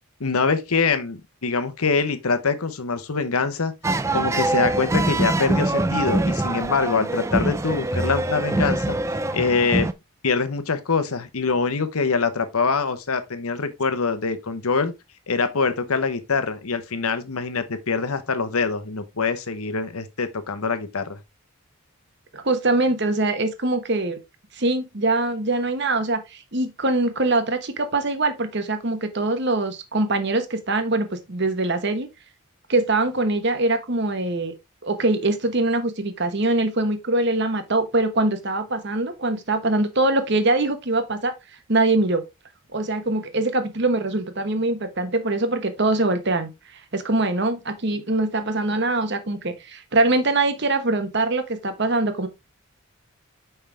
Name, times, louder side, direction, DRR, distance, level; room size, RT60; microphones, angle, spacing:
voice 1, 0.2-3.7 4.1-9.0 9.3-9.9 10.2-14.9 15.3-21.2, left 4 dB, 80° left, 1.0 m, -24 dB
sound 1, 3.8-9.9, right 2 dB, 15° right, 0.3 m, -24 dB
voice 2, 22.3-24.2 24.5-32.1 32.7-34.5 34.8-41.3 41.7-42.2 42.7-52.3, right 2 dB, 50° right, 1.1 m, -23 dB
5.7 x 5.5 x 3.5 m
head